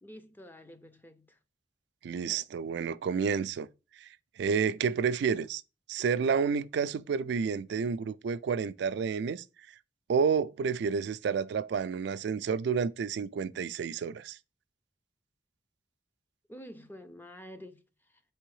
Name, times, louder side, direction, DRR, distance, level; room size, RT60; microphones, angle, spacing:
voice 1, 0.0-1.4 16.5-18.2, equal, 10° left, 0.5 m, -49 dB
voice 2, 2.0-3.7 4.0-4.1 4.4-5.6 5.9-9.4 10.1-14.4, right 6 dB, 70° right, 0.3 m, -30 dB
4.5 x 3.4 x 3.1 m
head